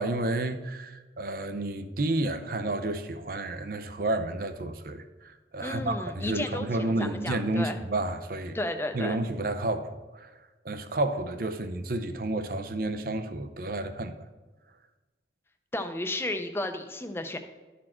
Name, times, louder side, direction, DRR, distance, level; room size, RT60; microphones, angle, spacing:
voice 1, 0.0-8.6 8.9-10.3 10.6-14.1, right 2 dB, 55° right, 0.6 m, -31 dB
voice 2, 5.6-7.8 8.5-9.2 15.7-17.4, left 1 dB, 15° left, 0.5 m, -33 dB
12.0 x 4.3 x 4.3 m
head